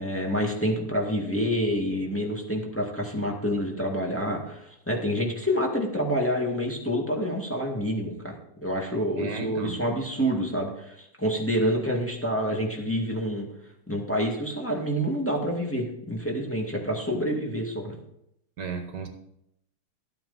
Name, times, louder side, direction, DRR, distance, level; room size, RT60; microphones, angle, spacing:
voice 1, 0.0-8.3 8.6-13.5 13.9-17.9, equal, 5° left, -1 dB, 1.7 m, -27 dB
voice 2, 9.2-9.8 18.6-19.1, right 5 dB, 55° right, 6 dB, 1.7 m, -34 dB
13.5 x 9.0 x 4.0 m, 0.78 s
omnidirectional pair, 2.4 m